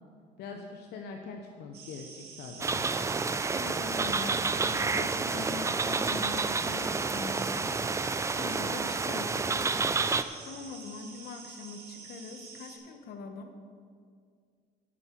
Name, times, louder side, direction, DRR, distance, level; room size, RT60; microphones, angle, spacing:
voice 1, 0.4-2.9, left 4 dB, 80° left, 3 dB, 0.9 m, -43 dB
sound 1, 1.7-12.8, right 5 dB, 65° right, 2.2 m, -48 dB
sound 2, 2.6-10.2, right 4 dB, 15° right, 0.4 m, -29 dB
voice 2, 3.5-8.1 8.4-9.6 10.4-13.5, left 4 dB, 65° left, 6 dB, 1.2 m, -42 dB
11.5 x 10.0 x 4.6 m, 2.1 s
cardioid pair, 110°, 17 cm